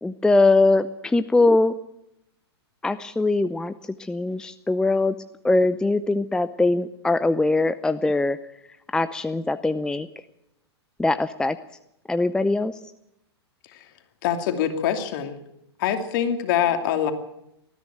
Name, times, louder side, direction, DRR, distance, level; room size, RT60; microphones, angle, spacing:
voice 1, 0.0-1.7 2.8-3.7 4.0-5.1 5.4-8.4 8.9-10.1 11.0-11.6 12.1-12.8, left 2 dB, 5° left, 12 dB, 0.6 m, -21 dB
voice 2, 14.2-15.4 15.8-17.1, left 9 dB, 50° left, 6 dB, 2.8 m, -24 dB
20.0 x 14.0 x 9.0 m, 0.82 s
figure-of-eight pair, 105°, 14 cm